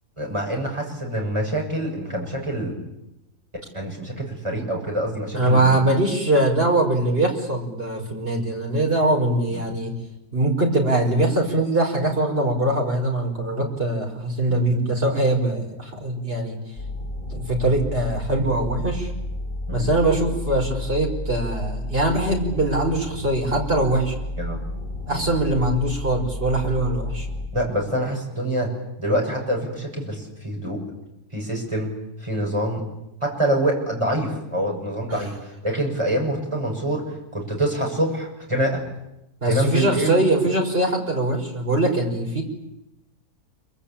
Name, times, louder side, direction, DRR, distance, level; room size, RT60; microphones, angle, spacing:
voice 1, 0.2-2.7 3.7-5.8 9.5-9.6 14.5-14.6 19.7-19.9 24.4-24.6 25.1-25.3 27.5-28.7 29.0-30.8 31.3-31.9 32.2-32.8 33.2-37.0 37.3-38.8 39.5-40.2, right 1 dB, 20° right, 0 dB, 6.9 m, -26 dB
voice 2, 5.3-9.9 10.3-16.6 17.3-19.1 19.7-24.1 25.1-27.3 35.1-35.2 39.4-42.4, right 1 dB, 40° right, 1 dB, 5.4 m, -22 dB
sound 1, 16.8-27.5, left 1 dB, 40° left, 6.8 m, -31 dB
26.0 x 24.0 x 8.8 m, 0.89 s
omnidirectional pair, 1.6 m